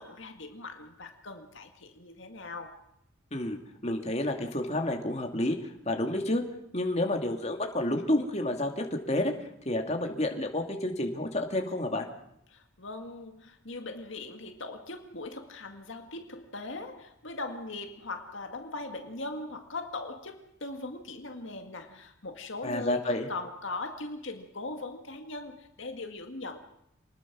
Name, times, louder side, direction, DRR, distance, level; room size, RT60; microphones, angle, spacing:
voice 1, 0.0-2.8 12.5-26.6, left 2 dB, 65° left, 5 dB, 2.0 m, -40 dB
voice 2, 3.3-6.4 6.7-9.3 9.7-12.1 22.6-23.3, left 1 dB, 30° left, 3 dB, 2.4 m, -30 dB
26.5 x 20.5 x 6.2 m, 0.80 s
head